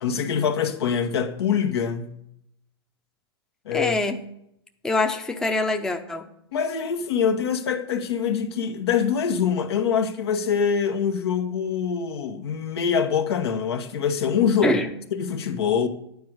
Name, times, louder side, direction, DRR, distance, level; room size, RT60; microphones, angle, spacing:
voice 1, 0.0-2.2 3.6-4.0 6.5-14.8 15.1-15.9, left 7 dB, 75° left, 1.1 m, -24 dB
voice 2, 3.7-4.2 4.8-6.3 14.6-14.9, left 2 dB, 5° left, 0.6 m, -24 dB
9.4 x 4.8 x 6.4 m
hypercardioid pair, 130°, 13 cm